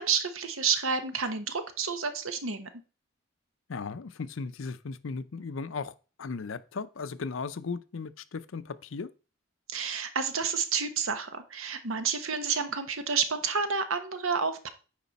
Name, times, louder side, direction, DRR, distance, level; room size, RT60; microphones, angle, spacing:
voice 1, 0.0-2.7 9.7-14.7, right 5 dB, 80° right, 1.1 m, -30 dB
voice 2, 3.7-9.1, left 4 dB, 70° left, 0.6 m, -36 dB
9.3 x 4.9 x 4.1 m
head